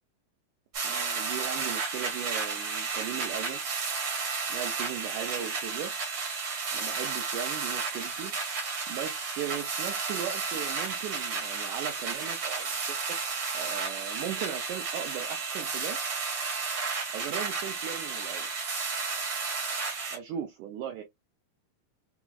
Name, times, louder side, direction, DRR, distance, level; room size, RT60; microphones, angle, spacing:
sound 1, 0.7-20.2, right 4 dB, 60° right, 1.5 m, -32 dB
voice 1, 0.8-3.6 4.5-5.9 6.7-8.3 8.9-13.0 13.5-16.0 17.1-18.5 20.1-21.0, right 9 dB, 90° right, 1.7 m, -38 dB
5.8 x 2.0 x 2.2 m
omnidirectional pair, 4.1 m